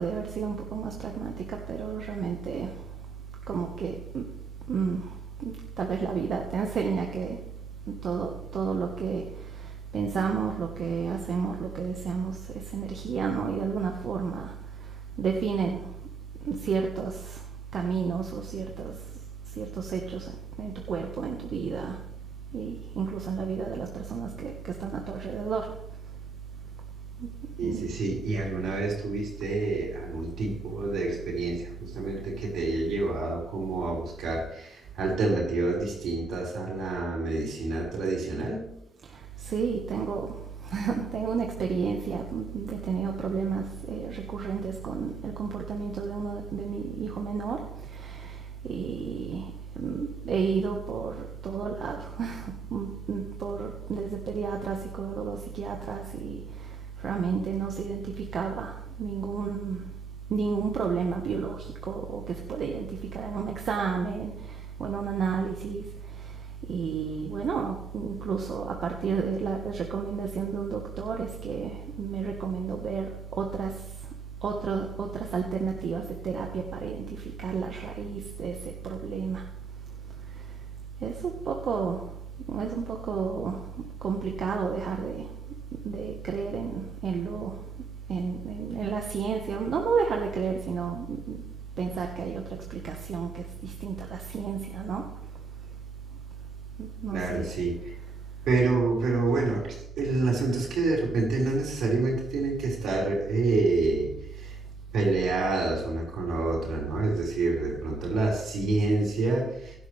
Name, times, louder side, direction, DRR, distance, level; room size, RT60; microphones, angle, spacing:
voice 1, 0.0-2.9 3.5-4.2 4.7-7.4 7.9-16.1 16.4-19.2 19.4-22.1 22.5-25.7 27.2-27.3 27.6-27.9 39.0-60.0 60.3-74.1 74.4-79.4 80.2-80.6 81.0-82.2 82.5-85.3 85.7-91.5 91.8-95.1 96.8-97.6 98.0-98.1, right 5 dB, 65° right, 1.5 m, -32 dB
voice 2, 27.6-38.7 97.1-97.9 98.5-104.6 104.9-109.7, right 3 dB, 85° right, 5.4 m, -28 dB
16.5 x 11.5 x 3.5 m
cardioid pair, 105°, 0 cm